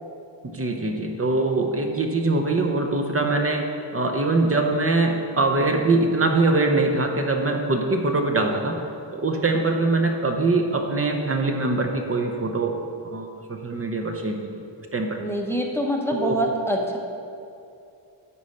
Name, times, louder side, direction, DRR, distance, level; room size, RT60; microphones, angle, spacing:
voice 1, 0.4-8.8 9.1-12.8 13.0-14.5 14.9-15.2 16.1-16.3, right 2 dB, 30° right, 3 dB, 0.6 m, -23 dB
voice 2, 15.2-17.0, equal, 5° left, 0 dB, 0.7 m, -25 dB
9.8 x 4.2 x 6.5 m, 2.6 s
wide cardioid pair, 155°, 45 cm